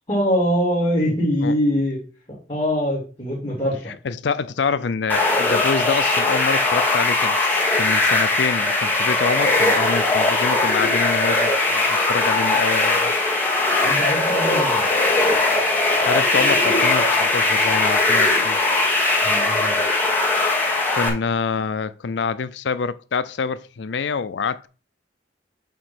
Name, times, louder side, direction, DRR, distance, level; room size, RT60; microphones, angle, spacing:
voice 1, 0.1-2.0 2.5-3.9 13.8-14.8 19.2-19.8, equal, 30° left, 2.5 m, -23 dB
voice 2, 4.0-13.1 16.0-18.6 20.9-24.7, left 5 dB, 75° left, 0.5 m, -26 dB
sound 1, 5.1-21.1, left 2 dB, 10° left, 1.4 m, -19 dB
8.3 x 2.9 x 6.2 m
head